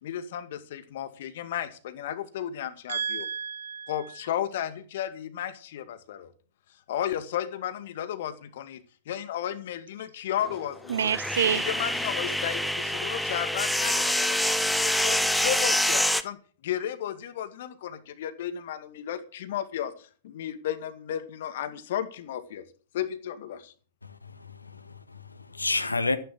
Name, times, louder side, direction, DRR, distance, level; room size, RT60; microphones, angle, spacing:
voice 1, 0.0-3.3 3.9-6.3 6.9-11.1 11.5-14.4 14.8-16.4 16.6-22.6 22.9-23.7, left 10 dB, 60° left, 2.1 m, -34 dB
voice 2, 2.9-4.2 10.9-11.7, right 7 dB, 70° right, 1.6 m, -29 dB
sound 1, 10.4-16.2, left 1 dB, ahead, 1.1 m, -26 dB
voice 3, 24.0-26.2, left 3 dB, 90° left, 1.7 m, -31 dB
14.0 x 11.0 x 6.2 m
figure-of-eight pair, 105°, 0 cm